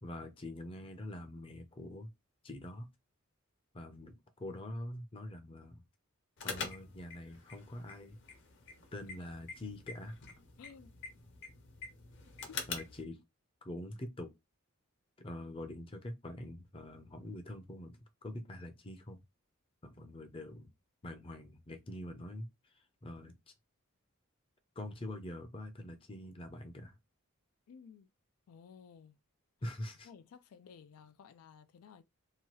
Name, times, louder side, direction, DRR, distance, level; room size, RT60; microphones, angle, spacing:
voice 1, 0.0-2.1 2.4-2.9 3.7-5.8 6.4-8.2 8.9-10.2 12.7-13.2 13.6-14.3 15.2-19.2 19.8-20.7 21.0-23.3 24.8-27.0 29.6-30.1, left 1 dB, 25° left, 0.5 m, -45 dB
sound 1, 6.4-13.0, left 4 dB, 55° left, 0.7 m, -46 dB
voice 2, 10.6-10.9 12.5-12.6 27.7-28.1 28.5-29.2 30.0-32.0, left 6 dB, 90° left, 0.4 m, -55 dB
2.8 x 2.3 x 3.0 m
head